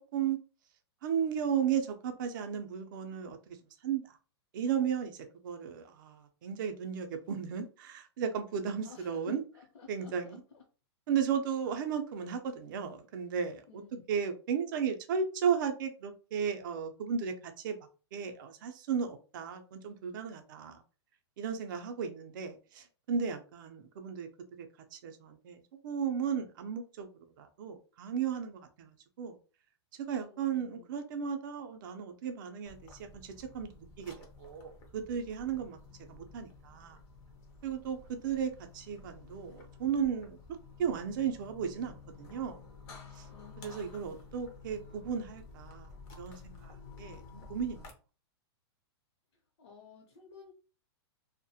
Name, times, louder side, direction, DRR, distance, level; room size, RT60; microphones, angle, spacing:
voice 1, 1.0-3.6 3.8-4.2 4.5-9.4 9.9-10.4 11.1-13.8 14.1-17.8 18.1-20.8 21.4-24.3 24.6-27.1 27.4-29.4 30.0-37.0 37.6-40.4 40.8-42.6 43.2-43.3 43.6-45.9 46.2-47.9, right 7 dB, 45° right, 0.4 m, -35 dB
voice 2, 8.8-10.6 13.7-14.0 30.2-30.9 43.3-44.0 49.6-50.5, left 6 dB, 80° left, 0.7 m, -52 dB
sound 1, 32.7-47.9, left 4 dB, 20° left, 0.4 m, -52 dB
2.3 x 2.0 x 2.7 m
hypercardioid pair, 165°, 14 cm